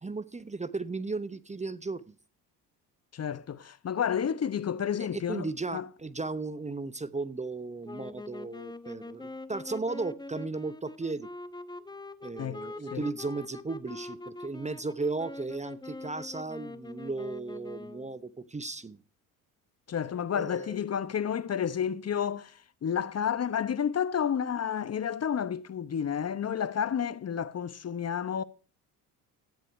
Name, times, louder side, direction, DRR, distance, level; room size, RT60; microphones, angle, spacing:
voice 1, 0.0-2.1 5.0-11.3 12.2-19.0 20.3-20.8, right 3 dB, 15° right, 0.9 m, -35 dB
voice 2, 3.1-5.9 12.4-12.6 12.9-13.1 19.9-28.4, left 8 dB, 35° left, 0.9 m, -31 dB
sound 1, 7.8-18.2, left 2 dB, 10° left, 1.0 m, -43 dB
14.0 x 9.9 x 4.6 m
hypercardioid pair, 60°, 45 cm